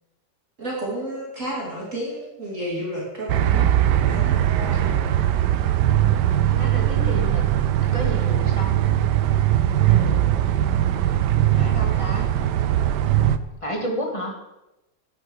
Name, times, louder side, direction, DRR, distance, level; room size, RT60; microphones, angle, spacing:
voice 1, 0.6-3.6 3.9-5.1 9.9-10.2, right 1 dB, 40° right, -4 dB, 3.0 m, -31 dB
sound 1, 3.3-13.4, right 11 dB, 70° right, 1.2 m, -20 dB
voice 2, 6.6-7.4 7.9-8.8 11.5-12.3 13.6-14.3, equal, 15° left, 1 dB, 2.0 m, -30 dB
10.5 x 9.9 x 6.4 m, 0.95 s
omnidirectional pair, 2.1 m